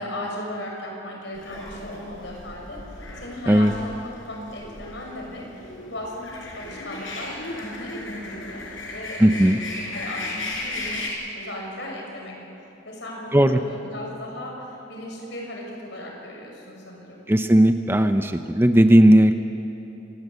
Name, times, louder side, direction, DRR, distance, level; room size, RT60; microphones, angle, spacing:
voice 1, 0.0-11.1 11.3-12.4 12.8-17.2, left 1 dB, 65° left, -1 dB, 6.4 m, -36 dB
sound 1, 1.4-11.1, left 2 dB, 90° left, 5.5 m, -36 dB
voice 2, 9.2-9.6 13.3-13.6 17.3-19.3, right 1 dB, 10° right, 8 dB, 0.7 m, -16 dB
26.0 x 18.5 x 8.1 m, 3.0 s
head